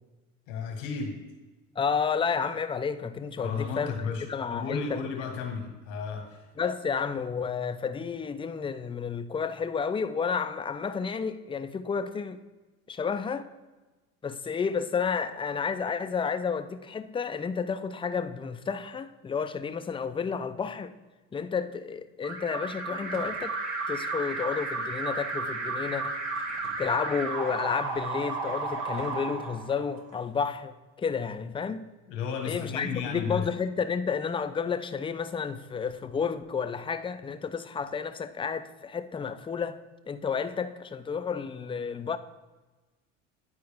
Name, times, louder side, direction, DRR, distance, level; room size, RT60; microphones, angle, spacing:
voice 1, 0.5-1.1 3.4-4.2 4.5-6.5 32.1-33.4, left 6 dB, 80° left, 1.5 m, -33 dB
voice 2, 1.8-4.0 4.3-5.0 6.6-12.4 12.9-13.5 14.2-20.9 21.3-23.6 23.9-26.1 26.8-31.8 32.5-39.8 40.1-42.2, left 6 dB, 15° left, 0.4 m, -31 dB
Alarm, 22.2-30.1, right 3 dB, 80° right, 1.2 m, -33 dB
9.5 x 4.6 x 3.4 m
hypercardioid pair, 70°, 38 cm